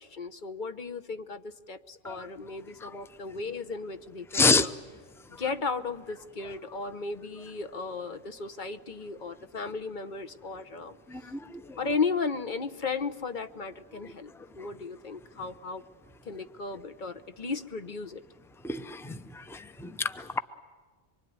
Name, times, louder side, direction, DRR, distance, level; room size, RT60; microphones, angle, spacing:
voice 1, 0.0-4.7 5.4-11.0 11.8-15.8 16.3-18.2, left 4 dB, 50° left, 10 dB, 1.1 m, -35 dB
voice 2, 4.3-4.7 11.1-11.8 14.6-14.7 18.6-20.4, left 4 dB, 5° left, 10 dB, 0.6 m, -28 dB
25.5 x 24.0 x 9.5 m, 1.4 s
omnidirectional pair, 1.1 m